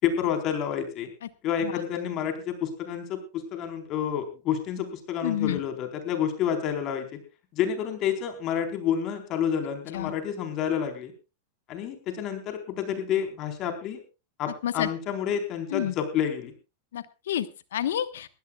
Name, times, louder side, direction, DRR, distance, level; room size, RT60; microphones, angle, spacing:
voice 1, 0.0-1.1 1.4-7.2 7.5-11.1 11.7-14.0 14.4-16.5, left 8 dB, 45° left, 6 dB, 4.1 m, -29 dB
voice 2, 5.2-5.6 9.9-10.1 14.5-14.9 15.7-15.9 16.9-18.3, left 11 dB, 75° left, 13 dB, 1.2 m, -29 dB
22.5 x 16.0 x 2.4 m, 0.29 s
hypercardioid pair, 105°, 0 cm